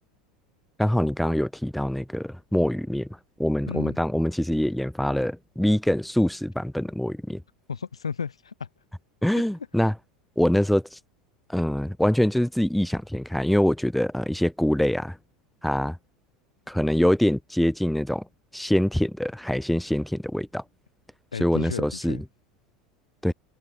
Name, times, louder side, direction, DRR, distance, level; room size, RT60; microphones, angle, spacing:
voice 1, 0.8-3.1 3.4-7.4 9.2-9.9 10.4-11.0 11.5-15.2 15.6-16.0 16.7-18.3 18.5-20.6 21.4-22.2 23.2-23.3, left 1 dB, ahead, 1.4 m, -24 dB
voice 2, 3.7-4.0 7.7-8.7 21.3-22.2, left 6 dB, 85° left, 1.7 m, -33 dB
figure-of-eight pair, 80°, 3 cm